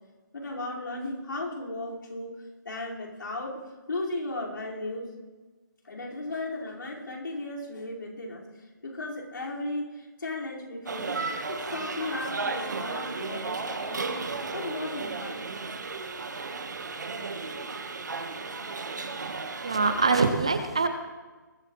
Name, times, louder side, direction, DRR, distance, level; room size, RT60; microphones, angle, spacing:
voice 1, 0.3-2.4 2.6-3.6 3.9-5.1 5.8-8.5 8.8-11.2 11.5-14.2 14.5-15.4, left 2 dB, 80° left, -5 dB, 5.3 m, -35 dB
sound 1, 10.9-20.3, right 4 dB, 60° right, 1.5 m, -34 dB
voice 2, 19.6-20.9, right 4 dB, 15° right, 9 dB, 0.4 m, -24 dB
20.5 x 13.5 x 3.3 m, 1.3 s
hypercardioid pair, 180°, 11 cm